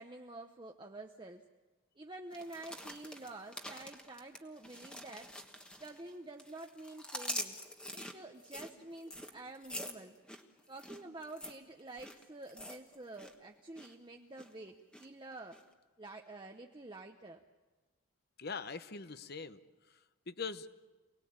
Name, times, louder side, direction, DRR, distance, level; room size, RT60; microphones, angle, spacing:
voice 1, 0.0-1.4 2.0-5.3 5.8-7.6 7.9-10.2 10.7-15.6 16.0-17.4, right 2 dB, 20° right, 3 dB, 0.8 m, -49 dB
sound 1, 2.3-6.1 6.4-13.3 13.6-13.9 14.4-15.1 15.5-15.6, left 1 dB, 5° left, 1.3 m, -45 dB
voice 2, 18.4-20.7, left 5 dB, 45° left, 12 dB, 0.9 m, -43 dB
28.0 x 19.5 x 8.7 m, 1.3 s
head